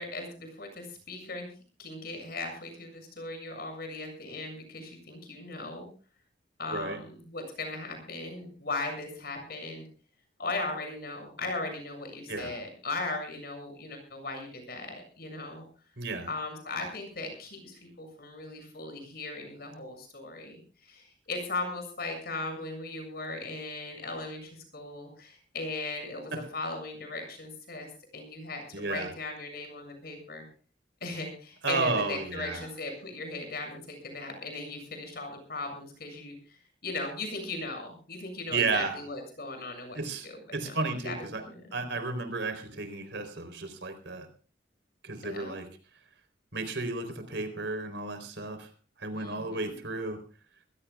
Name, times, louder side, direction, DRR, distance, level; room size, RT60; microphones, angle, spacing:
voice 1, 0.0-1.5 1.8-5.9 6.6-9.9 10.4-15.7 16.3-30.4 31.0-36.4 36.8-41.7 45.2-45.6 49.1-49.8, left 2 dB, 60° left, 5 dB, 7.2 m, -38 dB
voice 2, 16.0-16.3 28.7-29.1 31.6-32.7 38.5-39.0 39.9-40.3 40.5-41.4 41.7-44.3 45.0-45.7 46.5-48.7 49.0-50.2, right 3 dB, 80° right, 8 dB, 4.1 m, -32 dB
25.0 x 16.5 x 2.4 m, 0.37 s
head